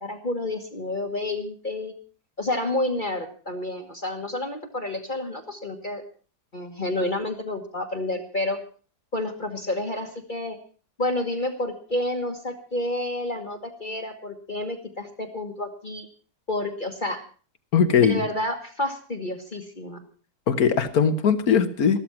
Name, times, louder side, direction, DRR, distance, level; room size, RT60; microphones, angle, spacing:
voice 1, 0.0-1.9 2.4-6.0 6.5-8.6 9.1-10.6 11.0-16.1 16.5-17.2 18.0-20.1, left 1 dB, 30° left, 4 dB, 1.6 m, -29 dB
voice 2, 17.7-18.2 20.5-22.0, left 6 dB, 65° left, 11 dB, 1.7 m, -20 dB
14.0 x 13.0 x 6.0 m, 0.40 s
omnidirectional pair, 1.7 m